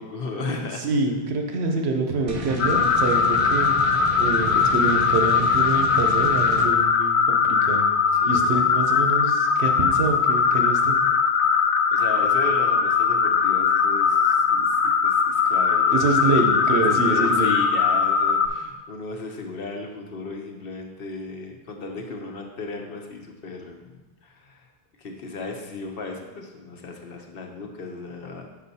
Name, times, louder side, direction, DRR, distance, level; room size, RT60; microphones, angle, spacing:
voice 1, 0.0-0.8 8.2-8.7 11.9-24.7 25.0-28.5, left 3 dB, 65° left, 2 dB, 1.0 m, -35 dB
voice 2, 0.8-7.9 8.3-11.0 15.9-17.6, right 3 dB, 80° right, 3 dB, 1.1 m, -26 dB
sound 1, 2.3-6.7, right 3 dB, 40° right, 0.7 m, -33 dB
sound 2, 2.6-18.5, left 6 dB, 90° left, 0.9 m, -20 dB
6.0 x 5.6 x 4.1 m, 1.2 s
omnidirectional pair, 1.1 m